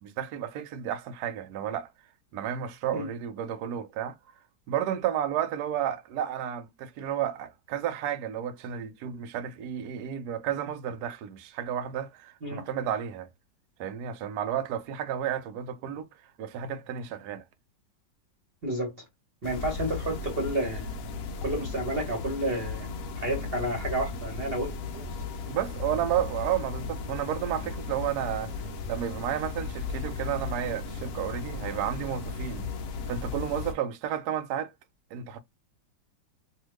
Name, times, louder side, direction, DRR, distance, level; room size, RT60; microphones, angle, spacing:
voice 1, 0.0-1.9 2.3-4.1 4.7-13.3 13.8-16.1 16.4-17.4 25.5-28.5 28.9-32.7 33.1-34.7 35.1-35.4, right 10 dB, 70° right, 1.0 m, -32 dB
voice 2, 18.6-18.9 19.4-20.9 21.4-22.9 23.2-25.1, right 1 dB, 35° right, 1.2 m, -31 dB
sound 1, 19.4-33.7, left 4 dB, 70° left, 0.8 m, -36 dB
2.7 x 2.7 x 3.1 m
omnidirectional pair, 1.9 m